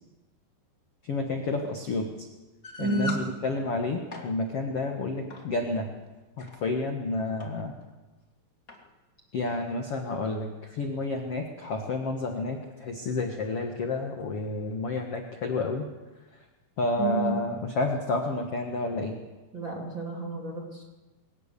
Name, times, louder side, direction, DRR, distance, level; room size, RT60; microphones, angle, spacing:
voice 1, 1.1-2.1 2.8-5.9 6.4-7.7 9.3-15.9 16.8-19.2, left 2 dB, 85° left, 3 dB, 1.3 m, -30 dB
sound 1, 2.6-3.3 3.9-4.3 5.3-5.5 6.2-6.6 7.4-7.5 7.8-7.9 8.7-8.8, left 2 dB, 30° left, 1.6 m, -38 dB
voice 2, 2.8-3.2 17.0-17.4 19.5-20.8, right 3 dB, 30° right, -1 dB, 2.7 m, -30 dB
22.0 x 18.0 x 6.9 m, 1.2 s
omnidirectional pair, 5.3 m